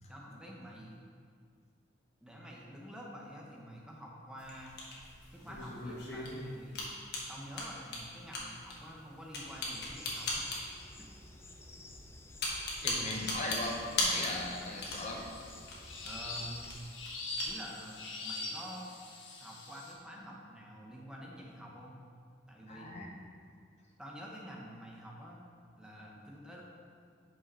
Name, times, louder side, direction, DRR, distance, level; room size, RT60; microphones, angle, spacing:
voice 1, 0.1-1.0 2.2-4.8 5.3-7.0 7.3-10.5 16.0-16.8 17.4-18.9 19.4-22.0 22.5-23.1 24.0-25.4 25.8-26.6, equal, 5° right, -3 dB, 0.9 m, -48 dB
sound 1, 4.4-17.6, left 2 dB, 60° left, 1.3 m, -39 dB
sound 2, 9.5-16.8, left 2 dB, 15° left, 0.4 m, -52 dB
voice 2, 12.8-15.2 22.7-23.2, left 2 dB, 35° left, -1 dB, 0.9 m, -39 dB
sound 3, 13.6-19.9, left 2 dB, 90° left, 1.2 m, -44 dB
5.7 x 5.0 x 5.5 m, 2.2 s
head